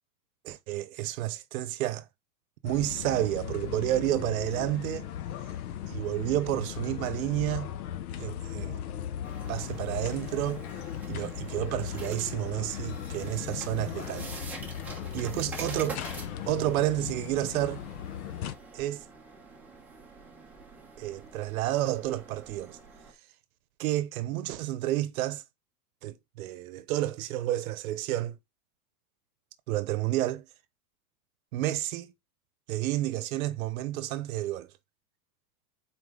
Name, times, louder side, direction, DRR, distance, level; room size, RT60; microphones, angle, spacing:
voice 1, 0.4-2.1 2.6-5.1 5.9-7.7 8.2-8.8 9.5-10.6 11.1-14.3 15.1-16.0 16.5-17.8 18.7-19.0 21.0-22.8 23.8-25.4 26.0-28.4 29.7-30.5 31.5-32.1 32.7-34.7, right 14 dB, 65° right, 0.9 m, -30 dB
sound 1, 2.6-18.5, left 10 dB, 65° left, 0.9 m, -37 dB
sound 2, 9.2-23.1, right 3 dB, 5° right, 0.9 m, -46 dB
6.9 x 4.5 x 3.6 m
supercardioid pair, 170°, 46 cm